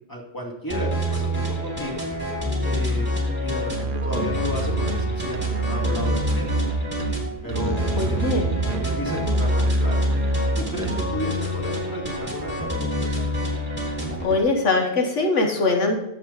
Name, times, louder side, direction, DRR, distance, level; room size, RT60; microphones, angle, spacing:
voice 1, 0.1-2.0 2.6-3.1 3.4-6.6 7.4-10.0 10.6-13.3, equal, 15° left, -1 dB, 2.2 m, -33 dB
sound 1, 0.7-14.4, left 1 dB, 10° right, 3.1 m, -27 dB
Musical instrument, 3.7-11.3, right 3 dB, 50° right, 0.8 m, -27 dB
voice 2, 8.0-8.5 14.2-16.0, left 3 dB, 75° left, 2 dB, 1.6 m, -22 dB
11.0 x 7.8 x 4.0 m, 0.90 s
omnidirectional pair, 1.2 m